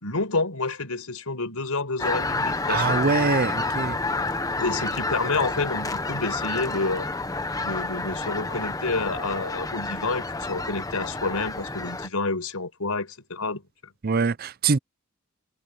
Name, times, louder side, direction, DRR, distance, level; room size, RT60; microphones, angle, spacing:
voice 1, 0.0-3.0 4.6-7.1 7.6-13.9, left 3 dB, 85° left, 4.8 m, -29 dB
sound 1, 2.0-12.1, left 3 dB, 15° left, 1.0 m, -29 dB
voice 2, 2.7-4.0 14.0-14.8, right 4 dB, 45° right, 0.5 m, -23 dB
head